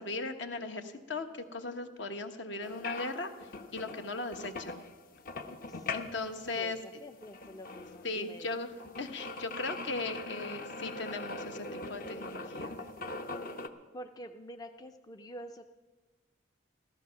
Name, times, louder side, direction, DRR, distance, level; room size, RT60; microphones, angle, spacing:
voice 1, 0.0-3.3 3.7-4.8 5.9-6.8 8.0-8.7 9.0-12.7, left 3 dB, 65° left, 6 dB, 1.2 m, -38 dB
sound 1, 2.6-13.7, left 3 dB, 45° left, 0.8 m, -42 dB
voice 2, 6.6-8.6 13.9-15.7, equal, 20° left, 7 dB, 0.4 m, -47 dB
14.5 x 14.0 x 5.8 m, 1.3 s
head